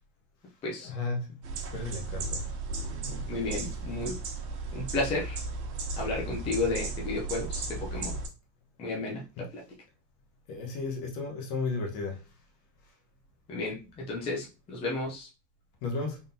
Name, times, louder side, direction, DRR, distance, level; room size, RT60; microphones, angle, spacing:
voice 1, 0.8-1.4 1.7-2.5 3.0-3.2 9.4-9.5 10.5-12.2 15.8-16.2, left 3 dB, 50° left, 1.2 m, -34 dB
sound 1, 1.4-8.3, right 3 dB, 80° right, 1.4 m, -35 dB
voice 2, 3.3-4.2 4.7-5.4 6.0-8.2 8.8-9.2 9.5-9.6 13.5-15.3, left 2 dB, 15° left, 0.4 m, -32 dB
3.8 x 3.7 x 2.6 m
supercardioid pair, 155°, 48 cm